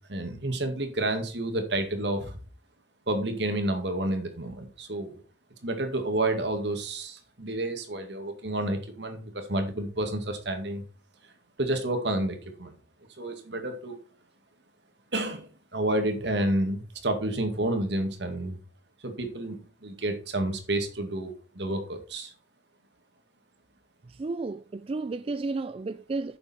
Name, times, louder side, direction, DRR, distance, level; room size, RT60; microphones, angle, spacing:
voice 1, 0.1-2.3 3.1-5.2 5.6-10.8 11.6-12.7 13.2-14.0 15.1-18.6 19.0-22.3, right 1 dB, 65° right, 2.0 m, -30 dB
voice 2, 24.2-26.4, right 3 dB, 30° right, 0.3 m, -32 dB
9.5 x 6.8 x 4.3 m
head